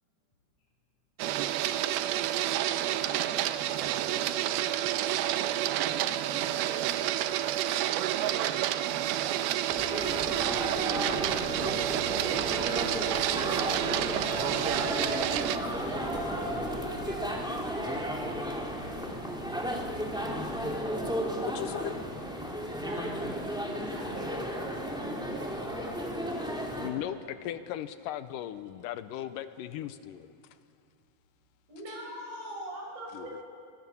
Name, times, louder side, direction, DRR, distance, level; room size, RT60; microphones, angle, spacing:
Printer, 1.2-15.6, right 12 dB, 90° right, 2.7 m, -29 dB
voice 1, 3.0-3.5 3.8-5.3 5.9-6.7 10.3-12.1 12.4-12.5, left 1 dB, 45° left, -4 dB, 3.7 m, -50 dB
sound 1, 9.7-26.9, equal, ahead, 1.8 m, -34 dB
sound 2, 10.0-20.8, right 2 dB, 50° right, 3.3 m, -48 dB
voice 2, 15.5-17.3 22.8-23.2 23.9-26.9 31.7-33.4, right 1 dB, 65° right, -2 dB, 6.8 m, -41 dB
voice 3, 21.4-21.9 26.8-30.3 33.1-33.4, left 11 dB, 75° left, 12 dB, 2.1 m, -37 dB
25.0 x 25.0 x 6.9 m, 2.4 s
omnidirectional pair, 4.4 m